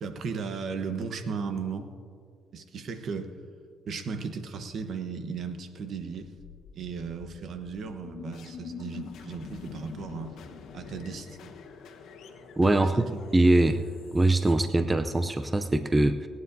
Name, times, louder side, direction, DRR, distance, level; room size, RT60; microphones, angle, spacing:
voice 1, 0.0-1.9 2.5-3.3 3.8-6.3 6.7-10.4 10.7-11.5 12.9-13.0, right 5 dB, 65° right, 7 dB, 1.1 m, -36 dB
sound 1, 6.4-15.3, left 6 dB, 85° left, 1.3 m, -45 dB
voice 2, 12.6-13.1 13.3-13.8 14.1-16.3, right 2 dB, 20° right, 8 dB, 0.5 m, -22 dB
29.0 x 9.7 x 2.7 m, 2.2 s
cardioid pair, 90°, 0 cm